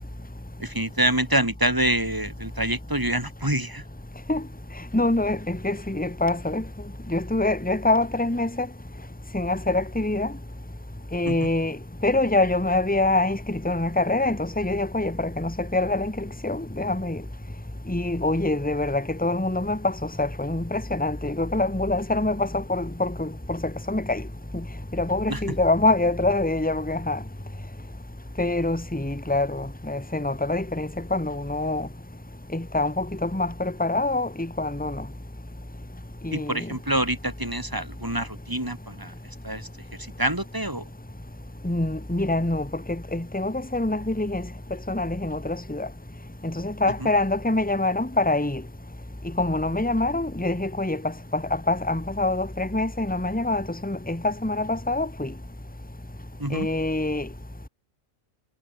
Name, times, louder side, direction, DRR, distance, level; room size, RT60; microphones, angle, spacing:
voice 1, 0.6-3.8 11.3-11.5 25.3-25.4 36.3-39.1 39.4-39.7 40.2-40.8 47.0-47.1 56.4-56.7, right 1 dB, 15° right, 3.5 m, -26 dB
voice 2, 4.9-6.6 7.1-8.7 9.3-10.3 11.1-11.8 12.0-17.2 17.9-23.6 23.9-24.2 24.5-24.6 25.0-27.2 28.4-31.9 32.5-35.0 36.2-36.7 41.6-44.5 44.9-45.9 46.4-48.6 49.4-51.0 51.3-55.3 56.5-57.3, left 2 dB, 5° left, 2.1 m, -25 dB
omnidirectional pair, 1.4 m